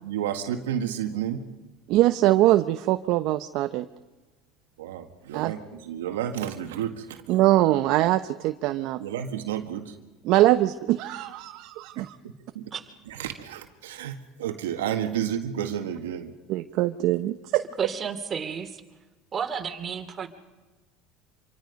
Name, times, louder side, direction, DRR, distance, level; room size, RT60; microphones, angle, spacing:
voice 1, 0.0-1.5 4.8-7.2 9.0-10.0 12.6-12.7 13.1-16.3, right 9 dB, 90° right, 6 dB, 1.8 m, -31 dB
voice 2, 1.9-3.9 5.3-5.5 7.3-9.0 10.2-12.2 16.5-17.6, right 15 dB, 65° right, 9 dB, 0.9 m, -22 dB
voice 3, 17.8-18.8 19.3-20.3, right 7 dB, 35° right, 6 dB, 2.8 m, -31 dB
27.0 x 23.5 x 5.4 m, 1.2 s
supercardioid pair, 90°, 0 cm